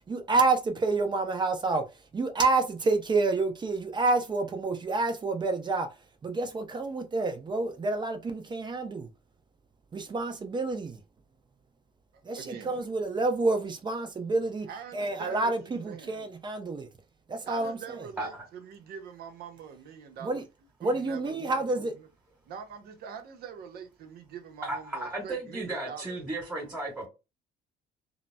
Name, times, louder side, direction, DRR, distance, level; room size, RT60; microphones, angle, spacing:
voice 1, 0.1-1.8 2.1-5.9 6.2-9.1 9.9-11.0 12.3-14.7 14.9-16.9 17.3-17.8 20.2-20.4 20.8-21.9, right 3 dB, 25° right, 0.5 m, -28 dB
voice 2, 12.3-12.9 13.1-13.3 14.7-16.2 17.5-20.4 20.8-22.1 22.5-26.2 26.6-26.8, right 7 dB, 65° right, 0.8 m, -44 dB
voice 3, 24.6-27.1, right 2 dB, 5° right, 1.4 m, -35 dB
3.8 x 2.0 x 2.2 m
cardioid pair, 110°, 17 cm